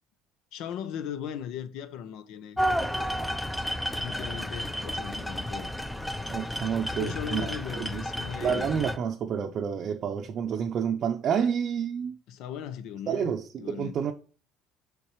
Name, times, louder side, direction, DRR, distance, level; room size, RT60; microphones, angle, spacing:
voice 1, 0.5-2.6 3.9-5.7 7.0-8.7 12.3-14.0, left 9 dB, 70° left, 0.8 m, -38 dB
sound 1, 2.6-9.0, equal, 5° left, 0.5 m, -32 dB
voice 2, 6.3-8.0 8.4-12.2 13.1-14.1, right 7 dB, 50° right, 0.6 m, -29 dB
7.1 x 5.2 x 3.1 m
supercardioid pair, 100°, 0 cm